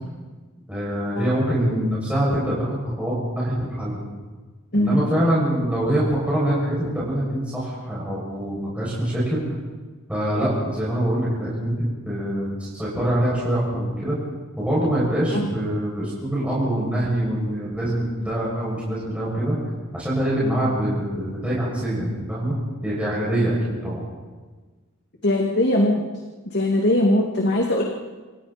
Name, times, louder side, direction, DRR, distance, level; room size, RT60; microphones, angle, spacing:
voice 1, 0.7-4.0 4.7-9.4 10.1-14.2 14.6-19.6 19.9-22.5 22.8-24.0, right 1 dB, 5° right, -8 dB, 7.3 m, -24 dB
voice 2, 4.7-5.1 15.3-15.5 25.2-26.0 26.5-27.8, left 1 dB, 55° left, 0 dB, 2.5 m, -20 dB
28.0 x 27.5 x 4.4 m, 1.3 s
head